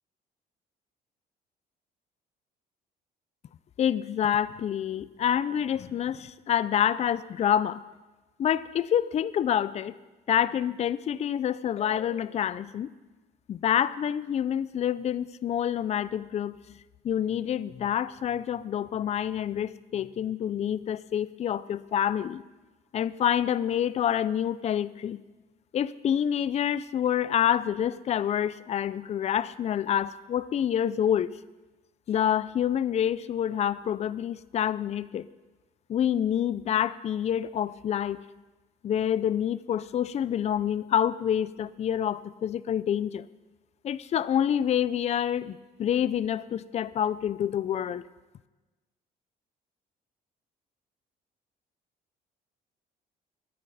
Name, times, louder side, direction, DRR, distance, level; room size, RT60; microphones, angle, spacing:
voice 1, 3.8-7.8 8.4-9.9 10.3-12.9 13.5-16.6 17.0-22.4 22.9-25.2 25.7-31.3 32.1-35.3 35.9-38.2 38.8-43.2 43.8-48.0, left 9 dB, 40° left, 17 dB, 0.5 m, -27 dB
21.5 x 10.0 x 4.2 m, 1.2 s
cardioid pair, 110°, 17 cm